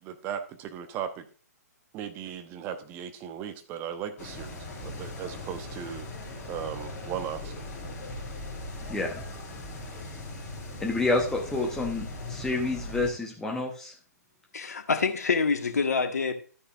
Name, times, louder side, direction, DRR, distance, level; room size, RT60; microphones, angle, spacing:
voice 1, 0.0-1.3 1.9-6.1 6.4-7.5, right 9 dB, 25° right, 1.0 m, -37 dB
sound 1, 4.2-13.1, left 1 dB, 20° left, 3.6 m, -39 dB
voice 2, 8.9-9.2 10.8-13.9, left 2 dB, 5° left, 1.2 m, -29 dB
voice 3, 14.5-16.3, left 5 dB, 65° left, 1.6 m, -26 dB
12.5 x 9.7 x 2.6 m
figure-of-eight pair, 125°, 9 cm